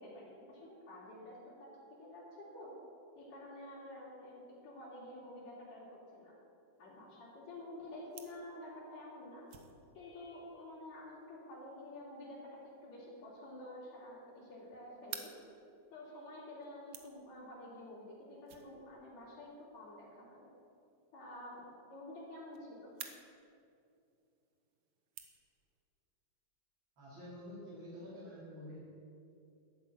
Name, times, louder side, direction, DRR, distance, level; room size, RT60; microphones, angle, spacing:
voice 1, 0.0-1.7 2.0-2.7 3.2-5.9 6.1-6.3 6.8-9.5 9.9-15.3 15.9-20.5 21.1-23.0, left 1 dB, 65° left, -7 dB, 4.3 m, -50 dB
sound 1, 6.7-25.8, right 8 dB, 65° right, 1.6 m, -57 dB
voice 2, 27.0-28.8, equal, 45° right, -7 dB, 3.1 m, -48 dB
12.5 x 8.3 x 8.6 m, 2.5 s
omnidirectional pair, 3.3 m